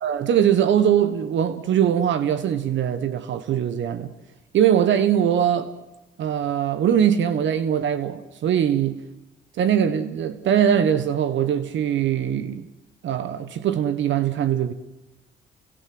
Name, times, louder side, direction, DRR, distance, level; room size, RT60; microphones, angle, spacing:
voice 1, 0.0-4.1 4.5-5.7 6.2-9.0 9.6-12.7 13.0-14.7, right 9 dB, 70° right, 1.4 m, -21 dB
29.0 x 18.0 x 7.8 m
cardioid pair, 90°, 20 cm